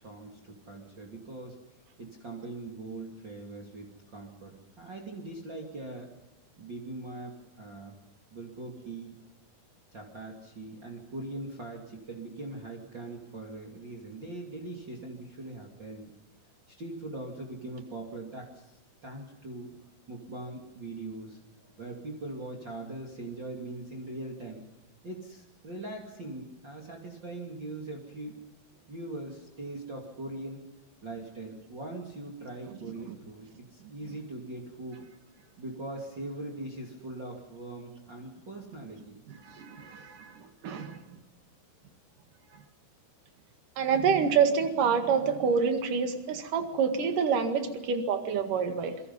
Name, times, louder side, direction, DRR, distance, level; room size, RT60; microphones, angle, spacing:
voice 1, 0.0-1.6 2.0-6.1 6.6-8.0 8.3-9.2 9.9-16.1 16.7-19.7 20.1-24.6 25.0-28.4 28.7-30.6 31.0-35.1 35.6-39.2, right 2 dB, 30° right, -1 dB, 3.0 m, -41 dB
voice 2, 39.3-41.0 43.8-49.0, right 6 dB, 60° right, 7 dB, 3.3 m, -27 dB
27.0 x 23.5 x 5.6 m, 1.0 s
omnidirectional pair, 4.5 m